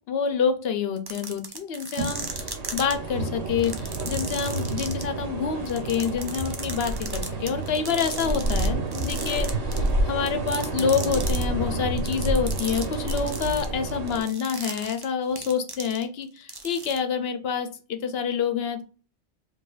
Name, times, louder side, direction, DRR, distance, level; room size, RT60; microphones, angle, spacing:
voice 1, 0.1-18.8, left 6 dB, 65° left, 8 dB, 0.8 m, -27 dB
sound 1, 1.0-2.9 3.6-5.0 5.7-8.7 8.9-9.9 10.3-11.4 12.0-16.2 16.5-17.0, right 3 dB, 30° right, 0.4 m, -35 dB
sound 2, 2.0-14.2, right 2 dB, 85° right, 1.3 m, -29 dB
4.9 x 2.7 x 2.4 m, 0.37 s
omnidirectional pair, 1.2 m